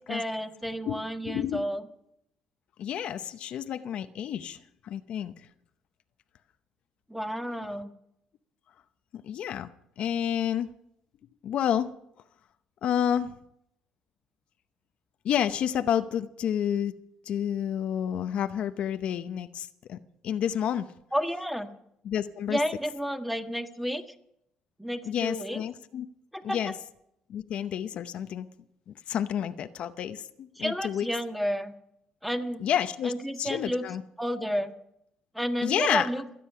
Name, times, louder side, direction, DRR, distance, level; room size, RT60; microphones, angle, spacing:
voice 1, 0.1-1.8 7.1-7.9 21.1-21.7 22.5-24.0 24.8-25.6 26.3-26.8 30.6-31.7 32.2-32.6 33.0-33.9 34.2-34.7 35.3-36.3, equal, ahead, 6 dB, 1.5 m, -31 dB
voice 2, 0.9-1.7 2.8-4.6 4.8-5.3 9.1-9.7 10.0-10.7 11.4-11.9 12.8-13.3 15.2-16.9 17.3-20.0 20.2-20.9 22.0-22.6 25.1-26.1 26.4-26.7 27.3-28.5 28.9-31.1 32.6-33.1 33.4-34.0 35.6-36.1, left 9 dB, 65° left, 10 dB, 0.7 m, -29 dB
27.0 x 9.5 x 5.6 m, 0.77 s
cardioid pair, 100°, 2 cm